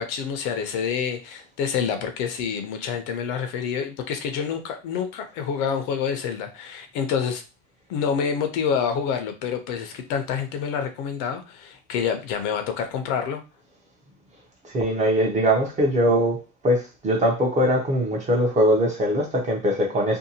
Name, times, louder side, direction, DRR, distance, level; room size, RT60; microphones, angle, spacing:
voice 1, 0.0-7.4 7.9-13.4, left 7 dB, 65° left, 0.7 m, -27 dB
voice 2, 14.7-20.2, equal, 20° right, 0.6 m, -21 dB
2.7 x 2.2 x 2.7 m
cardioid pair, 155°, 38 cm